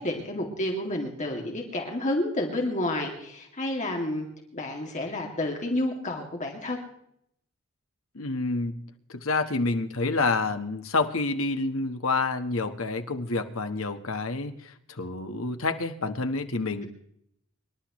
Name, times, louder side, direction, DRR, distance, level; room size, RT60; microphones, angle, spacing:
voice 1, 0.0-4.3 4.5-6.8, left 1 dB, 35° left, 1 dB, 2.4 m, -30 dB
voice 2, 8.1-8.8 9.1-16.9, left 3 dB, 70° left, 7 dB, 1.3 m, -28 dB
25.5 x 12.0 x 3.1 m, 0.72 s
head